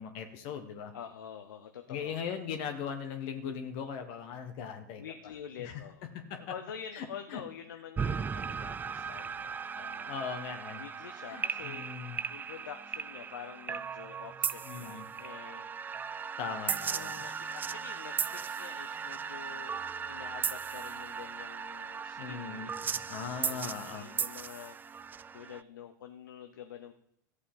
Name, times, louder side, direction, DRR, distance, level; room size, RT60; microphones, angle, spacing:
voice 1, 0.0-0.9 1.9-5.0 5.6-5.8 6.1-6.4 6.9-7.0 7.3-7.4 9.7-10.8 11.3-12.2 14.7-15.0 16.4-17.1 22.2-24.1, left 7 dB, 55° left, 5 dB, 1.4 m, -39 dB
voice 2, 0.9-2.2 5.0-6.1 6.4-10.1 10.8-11.9 12.3-15.7 16.7-22.7 23.3-24.8 25.3-26.9, left 8 dB, 80° left, 7 dB, 0.8 m, -47 dB
sound 1, 8.0-25.6, right 6 dB, 20° right, 0.3 m, -37 dB
14.5 x 8.1 x 3.9 m, 0.76 s
hypercardioid pair, 95°, 11 cm